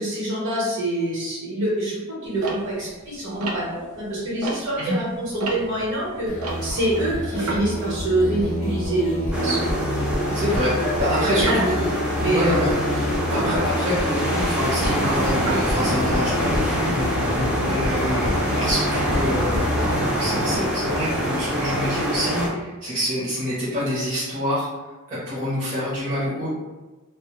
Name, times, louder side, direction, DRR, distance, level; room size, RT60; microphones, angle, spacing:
voice 1, 0.0-6.3 6.6-9.6 10.8-11.6 12.1-12.7 13.3-13.5 17.6-17.8, right 1 dB, 60° right, -7 dB, 0.9 m, -26 dB
sound 1, 2.4-4.9 5.3-8.7 9.0-9.1 9.4-10.2 11.3-11.7 13.3-16.1 16.8-17.4, right 2 dB, 75° right, 0.5 m, -32 dB
sound 2, 6.3-20.0, left 1 dB, 60° left, 0.6 m, -28 dB
sound 3, 9.3-22.5, equal, 5° right, 0.3 m, -25 dB
voice 2, 10.3-11.9 12.2-12.7 13.3-16.9 17.6-19.7 20.1-24.7 25.1-26.5, equal, 35° right, -11 dB, 0.7 m, -26 dB
2.1 x 2.0 x 2.8 m, 1.2 s
head